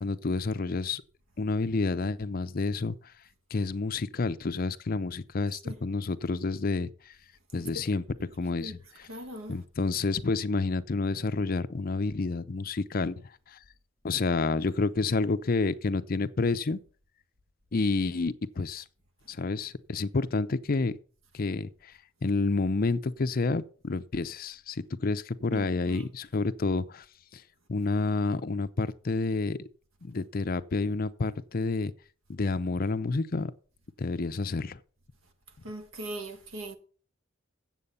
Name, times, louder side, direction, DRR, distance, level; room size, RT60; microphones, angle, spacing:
voice 1, 0.0-1.0 1.4-3.0 3.5-7.2 7.5-9.1 9.5-13.2 13.5-13.6 14.0-16.8 17.7-18.8 19.3-21.0 21.3-21.9 22.2-27.0 27.3-27.4 27.7-29.7 30.0-31.9 32.3-33.5 34.0-34.8, left 3 dB, 45° left, 0.5 m, -29 dB
voice 2, 7.5-7.8 8.6-8.8 9.1-9.6 25.5-26.1 35.6-36.8, right 1 dB, 85° right, 1.5 m, -40 dB
8.4 x 7.5 x 5.4 m
head